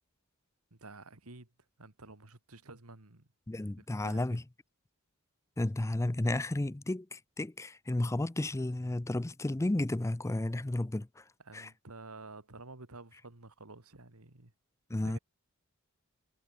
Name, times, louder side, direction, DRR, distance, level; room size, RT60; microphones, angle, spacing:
voice 1, 0.7-1.5 1.8-3.3 4.0-4.4 11.4-14.5 14.9-15.2, right 3 dB, 85° right, 2.5 m, -50 dB
voice 2, 3.5-4.4 5.6-11.2 11.5-11.7 14.9-15.2, left 1 dB, 15° left, 0.5 m, -32 dB
head